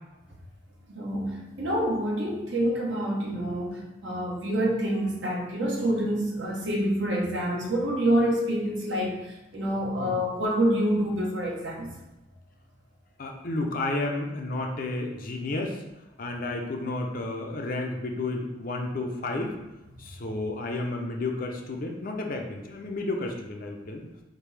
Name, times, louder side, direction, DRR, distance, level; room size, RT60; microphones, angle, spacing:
voice 1, 0.9-9.2 9.5-11.9, right 1 dB, 65° right, -2 dB, 1.0 m, -27 dB
voice 2, 13.2-15.8 16.2-19.6 20.0-24.2, left 2 dB, 45° left, 2 dB, 0.6 m, -31 dB
5.1 x 2.7 x 3.3 m, 0.97 s
head